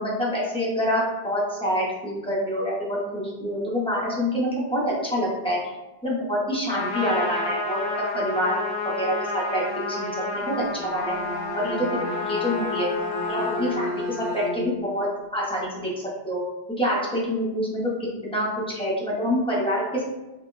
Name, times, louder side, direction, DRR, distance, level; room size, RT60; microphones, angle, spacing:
voice 1, 0.0-5.6 6.0-7.8 8.1-10.1 10.3-11.2 11.5-11.9 12.3-12.9 13.3-15.1 15.3-15.9 16.2-16.4 16.8-17.8 18.2-20.1, equal, 5° left, -6 dB, 0.5 m, -26 dB
Trumpet, 6.7-13.9, left 3 dB, 90° left, 0.9 m, -30 dB
Bowed string instrument, 10.6-14.9, left 1 dB, 15° right, 0.8 m, -32 dB
4.1 x 2.1 x 2.2 m, 1.1 s
omnidirectional pair, 1.1 m